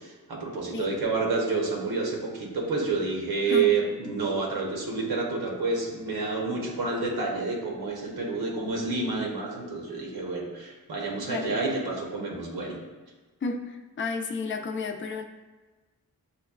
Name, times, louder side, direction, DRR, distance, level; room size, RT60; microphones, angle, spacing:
voice 1, 0.0-12.8, right 4 dB, 85° right, -1 dB, 0.9 m, -29 dB
voice 2, 11.2-11.6 13.4-15.2, left 3 dB, 35° left, 6 dB, 0.4 m, -32 dB
6.7 x 2.2 x 2.3 m, 1.2 s
cardioid pair, 65°, 37 cm